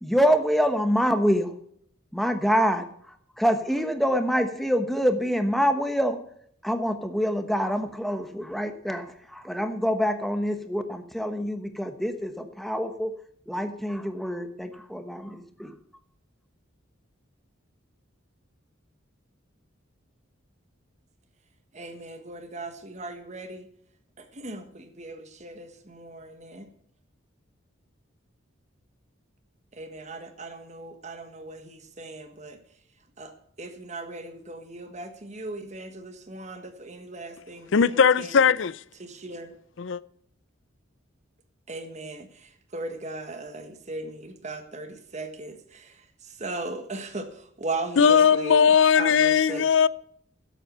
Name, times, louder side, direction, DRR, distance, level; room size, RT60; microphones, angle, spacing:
voice 1, 0.0-1.5 2.1-6.2 6.6-13.1 13.5-15.7, equal, ahead, 1.1 m, -26 dB
voice 2, 21.7-23.7 24.2-26.7 29.8-32.6 33.2-38.3 39.0-39.5 41.7-45.9 46.4-47.3 47.6-48.7 49.0-49.6, right 2 dB, 35° right, 1.5 m, -37 dB
voice 3, 37.7-38.8 39.8-40.0 48.0-49.9, left 6 dB, 65° left, 0.5 m, -19 dB
12.5 x 8.1 x 6.6 m
head